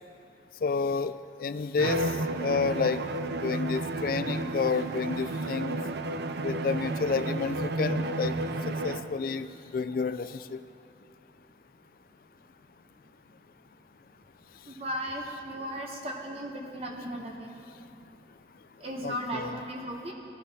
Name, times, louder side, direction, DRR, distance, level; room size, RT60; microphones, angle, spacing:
voice 1, 0.6-1.1 1.4-2.0 2.4-3.0 3.4-5.8 6.4-8.3 8.7-9.5 9.7-10.6 19.0-19.6, left 5 dB, 50° left, 13 dB, 0.3 m, -30 dB
Bowed string instrument, 1.8-9.2, right 2 dB, 65° right, 0.5 m, -32 dB
voice 2, 14.7-17.6 18.8-20.1, equal, 35° right, 0 dB, 0.9 m, -36 dB
18.5 x 10.5 x 2.8 m, 2.8 s
head